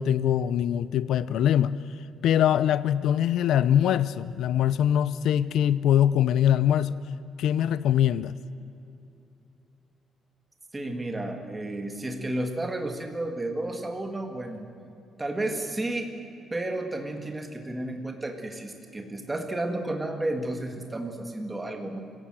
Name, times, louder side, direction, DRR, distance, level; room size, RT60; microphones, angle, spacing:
voice 1, 0.0-1.8 2.2-7.0 7.4-8.3, left 10 dB, 75° left, 16 dB, 0.6 m, -23 dB
voice 2, 10.7-14.7 15.2-16.1 16.5-22.0, right 1 dB, 10° right, 4 dB, 1.9 m, -32 dB
25.0 x 16.5 x 7.7 m, 2.8 s
cardioid pair, 180°, 0 cm